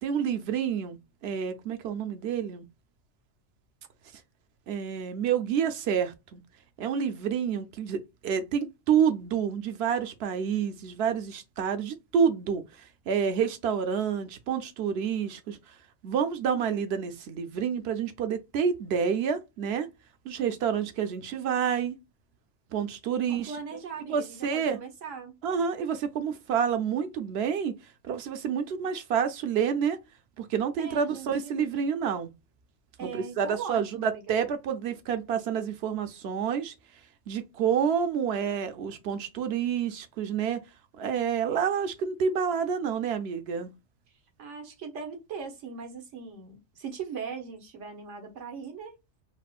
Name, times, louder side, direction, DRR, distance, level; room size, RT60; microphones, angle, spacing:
voice 1, 0.0-2.7 4.7-6.4 6.8-15.6 16.0-19.9 20.3-22.0 22.7-23.6 24.1-24.8 25.4-27.7 28.0-30.0 30.4-32.3 33.0-36.7 37.3-40.6 41.0-43.7, right 7 dB, 65° right, 0.7 m, -28 dB
voice 2, 23.3-25.3 30.8-31.5 33.0-34.2 44.4-48.9, right 6 dB, 90° right, 1.2 m, -39 dB
4.2 x 2.0 x 2.3 m
omnidirectional pair, 1.2 m